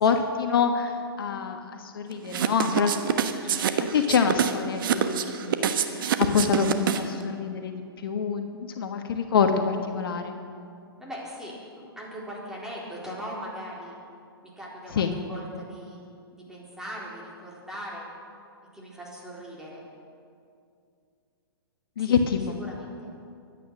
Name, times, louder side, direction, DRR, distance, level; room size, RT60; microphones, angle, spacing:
voice 1, 0.0-3.6 3.9-6.1 6.3-10.3 14.9-15.1 22.0-22.6, left 6 dB, 65° left, 6 dB, 1.4 m, -26 dB
sound 1, 2.3-7.2, right 8 dB, 60° right, 1.2 m, -25 dB
voice 2, 11.0-14.0 14.6-16.0 16.3-18.1 18.7-19.8 22.0-22.2 22.6-23.1, equal, 5° right, -5 dB, 4.1 m, -40 dB
24.0 x 9.6 x 6.3 m, 2.4 s
hypercardioid pair, 125°, 13 cm